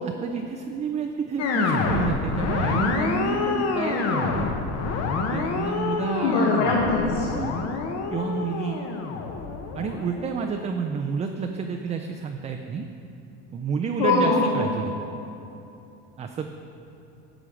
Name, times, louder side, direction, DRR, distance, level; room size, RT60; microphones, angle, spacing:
voice 1, 0.0-4.5 5.3-6.6 7.3-7.6 8.1-8.8 9.7-12.9 13.5-14.9 16.2-16.5, right 5 dB, 20° right, 4 dB, 0.4 m, -30 dB
sound 1, 1.4-10.7, left 4 dB, 50° left, 1.0 m, -27 dB
voice 2, 6.2-7.3 14.0-14.6, left 3 dB, 75° left, -3 dB, 1.6 m, -22 dB
11.0 x 6.3 x 4.9 m, 2.9 s
cardioid pair, 130°, 33 cm